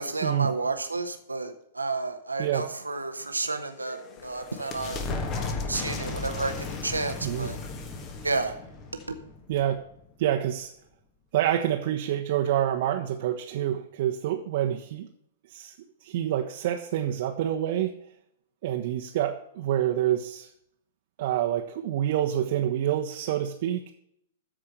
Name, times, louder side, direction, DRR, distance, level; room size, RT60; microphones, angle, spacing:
voice 1, 0.0-5.1 5.3-7.6 8.2-8.6 9.1-9.2, right 3 dB, 80° right, 7 dB, 1.1 m, -31 dB
sound 1, 3.6-10.0, left 3 dB, 30° left, 1.5 m, -35 dB
voice 2, 9.5-9.8 10.2-10.7 11.3-15.1 15.5-17.9 18.6-20.5 21.2-23.9, right 11 dB, 50° right, 3 dB, 1.1 m, -27 dB
14.0 x 5.0 x 6.7 m, 0.72 s
figure-of-eight pair, 105°, 0 cm